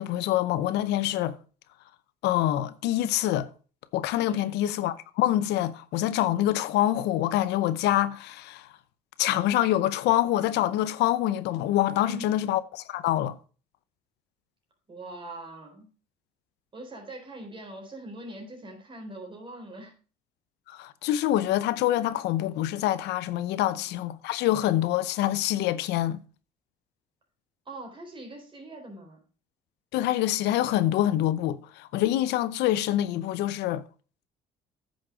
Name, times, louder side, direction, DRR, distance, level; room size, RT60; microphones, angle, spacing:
voice 1, 0.0-1.4 2.2-3.5 3.9-8.7 9.2-13.4 20.7-26.2 29.9-33.8, left 13 dB, 85° left, 0.7 m, -26 dB
voice 2, 4.2-4.6 12.0-12.3 14.9-15.9 16.7-19.9 23.7-23.9 27.7-29.2, right 1 dB, 30° right, 3.9 m, -42 dB
9.7 x 6.4 x 4.9 m
cardioid pair, 110°, 17 cm